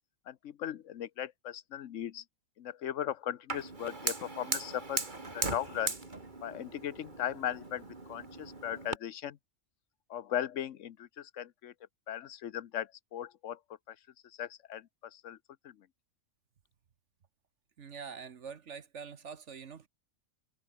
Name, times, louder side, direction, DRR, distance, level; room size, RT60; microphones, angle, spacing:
voice 1, 0.3-2.2 2.6-5.9 6.4-9.4 10.1-11.7 12.1-13.6 13.9-14.0 14.4-15.4 15.6-15.9, left 10 dB, 65° left, 1.1 m, -38 dB
Fire, 3.5-9.0, right 3 dB, 35° right, 2.6 m, -38 dB
voice 2, 17.8-19.9, right 6 dB, 60° right, 1.4 m, -45 dB
omnidirectional pair, 1.4 m